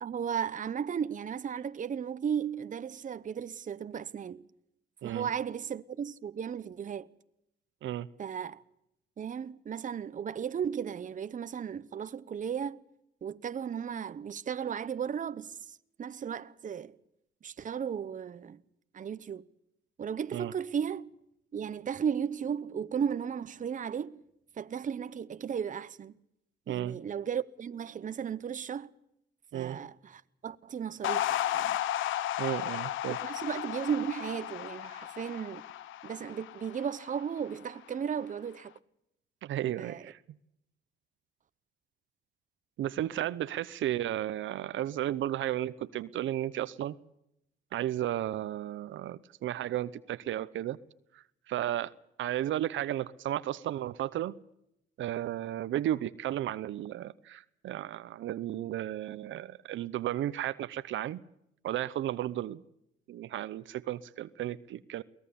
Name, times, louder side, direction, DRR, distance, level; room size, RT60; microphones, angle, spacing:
voice 1, 0.0-4.5 5.0-7.1 8.2-8.6 9.2-12.8 13.2-17.0 17.4-18.6 18.9-19.4 20.0-21.1 21.5-24.2 24.6-26.1 26.7-28.9 29.5-31.8 33.2-35.6 36.0-38.7 39.8-40.0, right 7 dB, 40° right, 0.9 m, -35 dB
voice 2, 26.7-27.0 29.5-29.8 32.4-33.2 39.4-40.2 42.8-47.0 47.7-50.8 51.1-51.9 52.2-54.4 55.0-61.2 61.6-62.6 63.1-65.0, right 12 dB, 75° right, 0.8 m, -34 dB
sound 1, 31.0-37.5, left 12 dB, 80° left, 0.8 m, -34 dB
23.0 x 18.5 x 7.1 m
cardioid pair, 90°, 20 cm